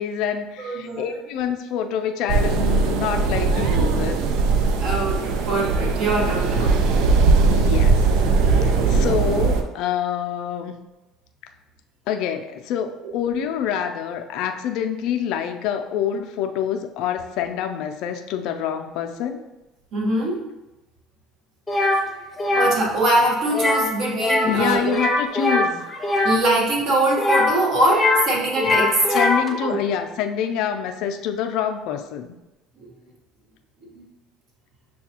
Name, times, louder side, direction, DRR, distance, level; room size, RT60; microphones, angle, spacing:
voice 1, 0.0-4.2 7.5-10.8 12.1-19.4 24.5-25.8 29.1-32.3, left 8 dB, 70° left, 6 dB, 0.4 m, -26 dB
voice 2, 0.6-1.1 4.8-6.7 19.9-20.4 22.6-25.0 26.2-29.0 29.6-29.8 33.9-34.0, right 1 dB, 60° right, -2 dB, 1.2 m, -22 dB
sound 1, 2.3-9.6, right 4 dB, 75° right, 0.4 m, -19 dB
sound 2, 21.7-22.0 22.4-22.7 23.5-23.9 24.2-24.6 24.9-26.4 27.1-28.3 28.5-29.5, left 2 dB, 10° left, 0.7 m, -21 dB
6.5 x 2.3 x 2.8 m, 1.0 s
supercardioid pair, 90°, 0 cm